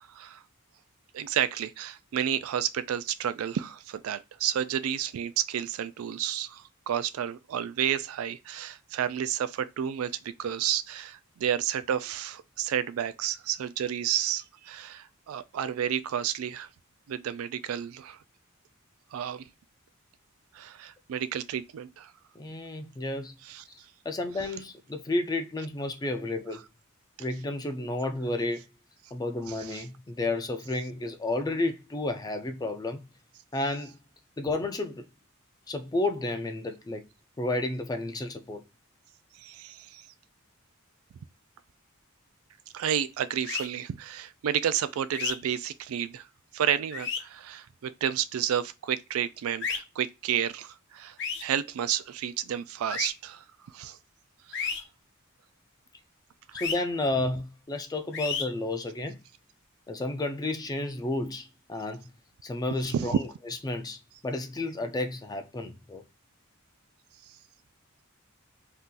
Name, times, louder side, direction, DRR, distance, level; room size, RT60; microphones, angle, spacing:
voice 1, 0.1-0.4 1.1-16.7 17.1-18.2 19.1-19.4 20.5-22.1 23.5-23.6 29.5-29.8 39.4-40.0 42.7-46.3 46.5-51.2 51.4-53.4 53.7-54.0 54.5-54.6 62.9-63.2, right 9 dB, 85° right, 0.3 m, -31 dB
voice 2, 22.4-23.4 23.7-23.8 24.1-26.6 27.2-28.6 29.1-33.0 33.5-34.0 34.4-35.0 35.7-37.0 37.4-38.6 56.6-59.2 59.9-62.1 62.4-63.3 63.6-66.0, left 2 dB, 20° left, 0.4 m, -31 dB
sound 1, 43.5-43.7 45.1-45.3 46.9-47.2 49.6-49.8 51.2-51.4 52.9-53.1 54.5-54.8 56.6-56.7 58.1-58.4, left 6 dB, 60° left, 0.7 m, -31 dB
2.7 x 2.4 x 3.7 m
head